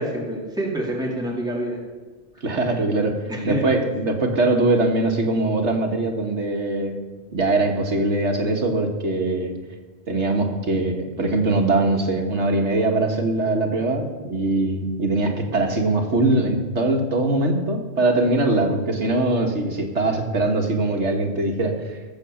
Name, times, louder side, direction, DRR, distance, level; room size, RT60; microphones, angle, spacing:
voice 1, 0.0-1.8 3.3-3.8, equal, 5° right, -3 dB, 2.5 m, -27 dB
voice 2, 2.4-3.1 3.4-7.0 7.3-9.5 10.1-22.0, right 2 dB, 70° right, 3 dB, 1.9 m, -22 dB
18.0 x 7.7 x 7.1 m, 1.3 s
omnidirectional pair, 1.2 m